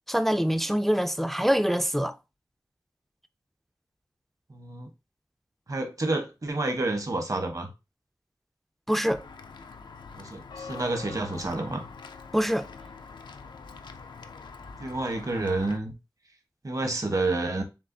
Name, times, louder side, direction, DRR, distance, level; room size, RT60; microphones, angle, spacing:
voice 1, 0.1-2.1 8.9-9.2 12.3-12.7, equal, 5° left, 0.4 m, -24 dB
voice 2, 4.5-4.9 5.7-7.7 10.2-11.8 14.8-15.9 16.6-17.6, right 2 dB, 50° right, 1.1 m, -29 dB
Walk footsteps / Bell, 9.1-15.8, left 5 dB, 85° left, 0.4 m, -44 dB
7.2 x 2.4 x 2.7 m
cardioid pair, 45°, 8 cm